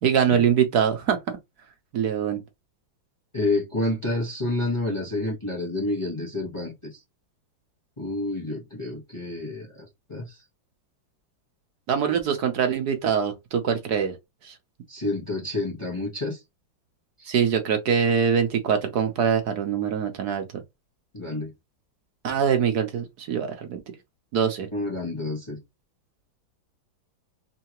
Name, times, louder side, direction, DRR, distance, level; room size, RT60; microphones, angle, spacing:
voice 1, 0.0-1.2 1.9-2.4 11.9-14.2 14.4-14.5 17.3-20.4 22.2-23.8 24.3-24.7, right 7 dB, 60° right, 1.2 m, -23 dB
voice 2, 3.3-6.7 8.0-10.4 14.9-16.4 17.2-17.3 21.1-21.5 24.7-25.6, left 2 dB, 20° left, 1.2 m, -29 dB
3.8 x 3.3 x 2.9 m
omnidirectional pair, 2.1 m